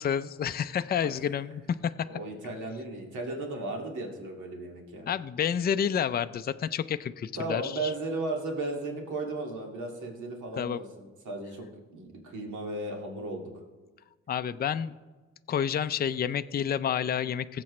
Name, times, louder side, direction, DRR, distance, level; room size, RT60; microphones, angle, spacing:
voice 1, 0.0-1.9 5.1-7.9 10.6-10.8 14.3-15.0 15.5-17.6, left 8 dB, 30° left, 11 dB, 0.5 m, -29 dB
voice 2, 2.1-5.1 7.4-13.5, right 2 dB, 75° right, 0 dB, 2.3 m, -35 dB
20.5 x 7.6 x 3.2 m, 1.3 s
cardioid pair, 90°, 30 cm